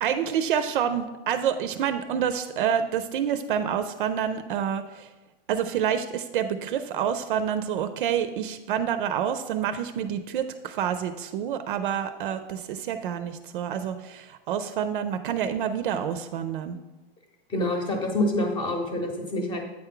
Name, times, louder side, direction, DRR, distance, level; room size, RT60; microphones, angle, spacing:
voice 1, 0.0-5.1 5.5-16.8, right 8 dB, 60° right, 10 dB, 0.5 m, -28 dB
voice 2, 17.5-19.6, left 1 dB, 15° left, 4 dB, 0.9 m, -27 dB
8.7 x 4.5 x 3.8 m, 1.1 s
supercardioid pair, 155°, 29 cm